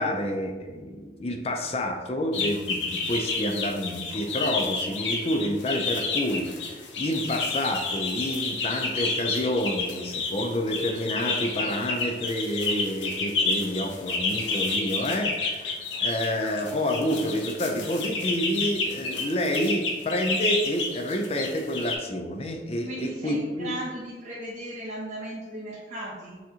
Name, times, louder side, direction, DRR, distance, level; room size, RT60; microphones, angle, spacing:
voice 1, 0.0-23.7, equal, 35° left, 3 dB, 0.4 m, -29 dB
sound 1, 2.3-22.0, left 3 dB, 85° left, 0.7 m, -30 dB
voice 2, 22.8-26.4, right 1 dB, 40° right, -8 dB, 0.7 m, -36 dB
5.6 x 2.8 x 2.7 m, 1.4 s
head